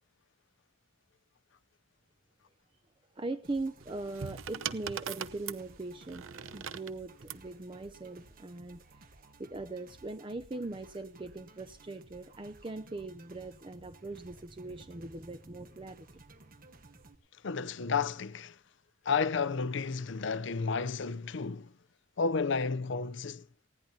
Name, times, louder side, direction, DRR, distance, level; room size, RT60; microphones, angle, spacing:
voice 1, 3.2-6.3 6.5-8.8 9.4-16.1, right 2 dB, 25° right, 0.6 m, -40 dB
sound 1, 3.4-17.2, right 2 dB, 45° right, 1.3 m, -57 dB
sound 2, 3.8-7.5 8.5-8.9, right 8 dB, 85° right, 0.8 m, -41 dB
voice 2, 17.4-18.5 19.1-21.7 22.2-23.4, left 5 dB, 65° left, 0.6 m, -32 dB
19.5 x 17.0 x 2.8 m
head